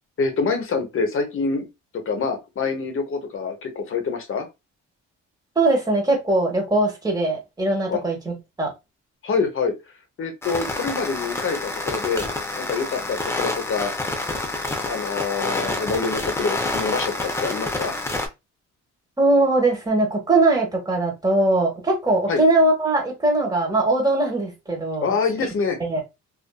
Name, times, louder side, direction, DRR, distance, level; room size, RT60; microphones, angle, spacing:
voice 1, 0.2-1.7 2.1-4.5 7.9-8.0 9.2-9.7 10.2-12.2 12.6-13.9 14.9-17.9 22.3-22.4 25.0-25.8, left 4 dB, 45° left, 0.8 m, -26 dB
voice 2, 5.6-8.7 19.2-25.1 25.8-26.0, right 2 dB, 15° right, 1.1 m, -21 dB
sound 1, 10.4-18.3, left 2 dB, 10° left, 0.5 m, -28 dB
2.5 x 2.4 x 2.2 m
cardioid pair, 90°, 30 cm